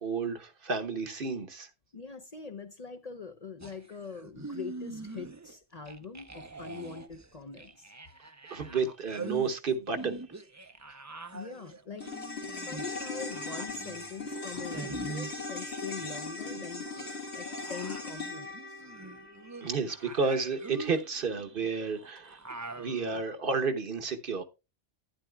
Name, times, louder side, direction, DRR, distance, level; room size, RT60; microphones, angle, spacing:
voice 1, 0.0-1.7 8.5-10.2 19.6-24.4, right 4 dB, 55° right, 1.1 m, -31 dB
voice 2, 1.9-7.9 11.3-12.1 12.6-16.8 17.3-18.8, left 5 dB, 40° left, 0.7 m, -43 dB
sound 1, 3.6-5.6 5.9-16.1 16.4-23.2, right 3 dB, 20° right, 0.5 m, -44 dB
sound 2, 12.0-20.5 20.8-20.9, left 3 dB, 75° left, 2.3 m, -39 dB
11.5 x 10.0 x 2.3 m
omnidirectional pair, 1.1 m